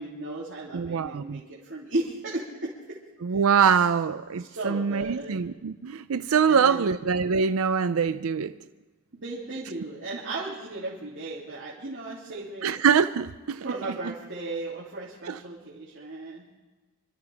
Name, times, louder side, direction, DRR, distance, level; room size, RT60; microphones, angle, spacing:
voice 1, 0.0-3.0 3.6-3.7 4.4-5.4 6.5-6.9 9.1-12.7 13.6-16.6, right 2 dB, 60° right, 3.1 m, -35 dB
voice 2, 0.7-1.4 3.2-8.5 12.6-13.6 15.3-15.4, right 6 dB, 90° right, 0.5 m, -24 dB
26.0 x 13.5 x 3.5 m
head